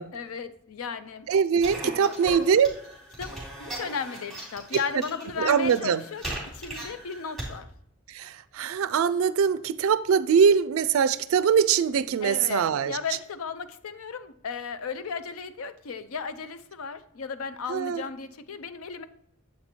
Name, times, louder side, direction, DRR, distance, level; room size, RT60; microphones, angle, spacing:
voice 1, 0.1-1.3 1.8-2.1 3.2-6.2 6.5-7.7 12.2-19.1, left 5 dB, 80° left, 0.5 m, -35 dB
voice 2, 1.3-2.7 5.4-6.0 8.1-12.9 17.7-18.1, right 7 dB, 75° right, 0.3 m, -22 dB
sound 1, 1.6-7.5, right 1 dB, ahead, 2.5 m, -39 dB
7.6 x 4.5 x 4.1 m
head